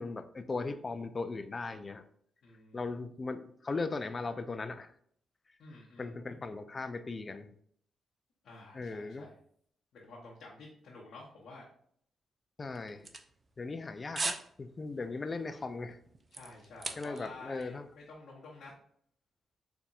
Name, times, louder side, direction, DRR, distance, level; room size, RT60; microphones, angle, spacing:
voice 1, 0.0-2.0 2.7-4.9 6.0-7.5 8.7-9.3 12.6-13.1 13.6-16.0 17.0-17.9, left 3 dB, 40° left, 10 dB, 0.4 m, -38 dB
voice 2, 2.4-2.9 5.6-6.1 8.4-9.3 9.9-11.7 16.3-18.7, left 2 dB, 70° left, -4 dB, 0.8 m, -50 dB
sound 1, 12.7-13.8 14.1-14.5 14.8-15.1 15.6-17.4 17.6-17.7, right 3 dB, 40° right, 0.5 m, -38 dB
4.0 x 3.4 x 2.4 m, 0.63 s
supercardioid pair, 50°, 0 cm